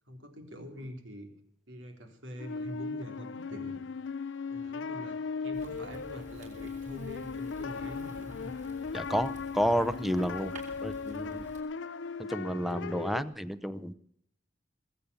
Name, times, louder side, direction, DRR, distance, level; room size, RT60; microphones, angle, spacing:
voice 1, 0.1-1.3 1.7-3.8 4.5-5.2 5.4-8.5, equal, 90° right, 5 dB, 3.4 m, -45 dB
sound 1, 2.4-13.2, left 5 dB, 75° left, 0.5 m, -38 dB
Fire, 5.5-11.6, right 1 dB, 40° right, 5.4 m, -51 dB
voice 2, 8.9-10.6 10.8-11.5 12.2-13.9, equal, ahead, 14 dB, 0.6 m, -31 dB
20.0 x 8.5 x 6.9 m, 0.69 s
head